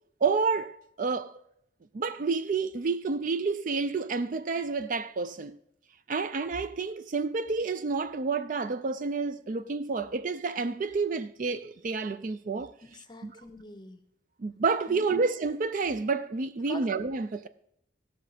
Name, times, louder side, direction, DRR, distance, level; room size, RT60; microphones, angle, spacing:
voice 1, 0.2-1.4 1.9-5.6 6.1-12.7 13.2-13.4 14.4-17.5, right 4 dB, 40° right, 0.4 m, -29 dB
voice 2, 12.8-14.0 14.9-15.2 16.7-16.9, left 2 dB, 20° left, 0.9 m, -44 dB
16.5 x 6.4 x 5.0 m
head